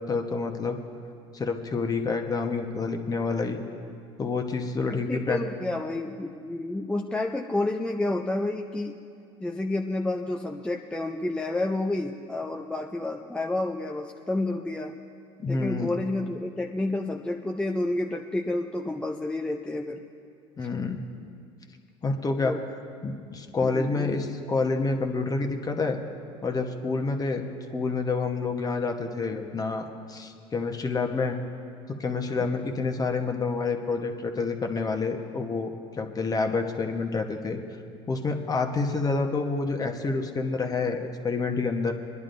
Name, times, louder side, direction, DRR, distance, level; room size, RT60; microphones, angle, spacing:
voice 1, 0.1-0.8 1.3-3.6 4.2-5.4 15.4-15.9 20.6-21.0 22.0-22.6 23.0-26.0 26.4-27.4 27.7-31.4 31.9-37.6 38.1-41.9, left 4 dB, 25° left, 4 dB, 1.1 m, -28 dB
voice 2, 4.9-9.0 9.4-14.9 15.5-20.0 22.4-22.6 23.6-24.2, left 2 dB, 5° left, 1 dB, 0.5 m, -30 dB
24.5 x 11.0 x 2.6 m, 2.4 s
supercardioid pair, 90°, 14 cm